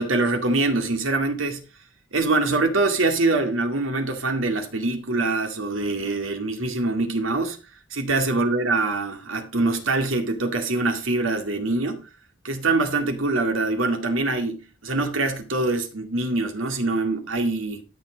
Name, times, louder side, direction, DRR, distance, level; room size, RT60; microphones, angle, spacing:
voice 1, 0.0-1.6 2.1-7.6 7.9-12.1 12.4-17.8, right 2 dB, 80° right, 2.1 m, -24 dB
13.0 x 5.9 x 5.1 m
head